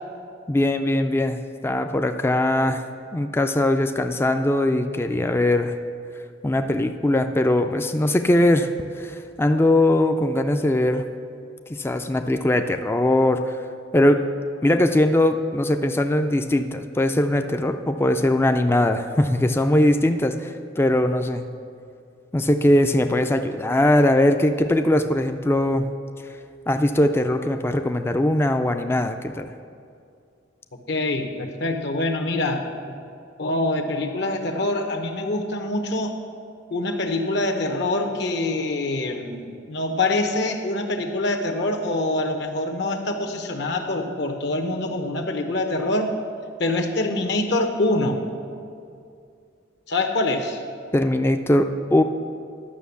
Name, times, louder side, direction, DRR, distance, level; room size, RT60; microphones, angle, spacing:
voice 1, 0.5-2.9 3.1-5.7 6.4-8.7 9.0-11.1 11.7-13.5 13.9-14.2 14.6-21.4 22.3-25.9 26.7-29.5 50.9-52.0, left 1 dB, 15° left, 7 dB, 0.3 m, -20 dB
voice 2, 30.9-32.7 33.4-36.2 36.7-46.1 46.6-48.2 49.9-50.6, left 2 dB, 65° left, 5 dB, 1.0 m, -25 dB
11.5 x 6.0 x 7.0 m, 2.4 s
head